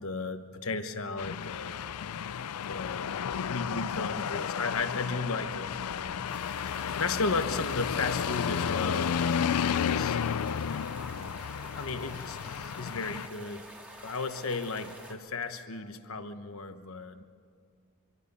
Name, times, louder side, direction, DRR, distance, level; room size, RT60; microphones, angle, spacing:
voice 1, 0.0-2.2 2.7-3.1 3.5-6.3 7.0-10.2 11.0-11.4 11.7-13.6 13.9-17.2, left 3 dB, 65° left, 9 dB, 1.2 m, -35 dB
sound 1, 1.2-13.3, left 7 dB, 80° left, 0.4 m, -32 dB
sound 2, 6.3-15.2, equal, 5° right, 2.2 m, -48 dB
24.5 x 23.5 x 5.6 m, 2.2 s
head